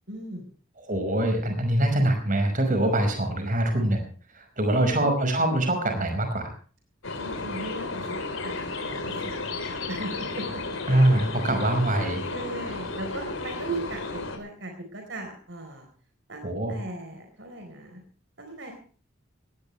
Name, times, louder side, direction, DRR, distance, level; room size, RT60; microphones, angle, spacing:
voice 1, 0.1-0.5 4.7-5.1 7.2-9.6 9.9-10.6 12.3-15.9 16.3-18.0 18.4-18.7, right 1 dB, 60° right, 4 dB, 4.2 m, -38 dB
voice 2, 0.8-4.0 4.3-6.5 10.9-12.2 16.4-16.7, right 1 dB, 40° right, 5 dB, 5.4 m, -24 dB
sound 1, 7.0-14.4, left 3 dB, 75° left, 4.3 m, -33 dB
18.5 x 17.5 x 3.3 m, 0.41 s
head